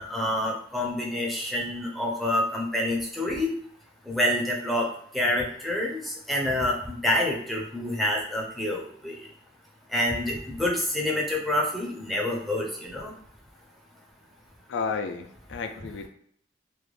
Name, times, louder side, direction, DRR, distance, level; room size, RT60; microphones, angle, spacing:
voice 1, 0.0-3.5 4.1-4.9 5.1-9.2 9.9-13.1, left 1 dB, ahead, -2 dB, 0.4 m, -27 dB
voice 2, 14.7-16.1, left 5 dB, 85° left, 7 dB, 0.3 m, -32 dB
2.4 x 2.1 x 3.1 m, 0.66 s
head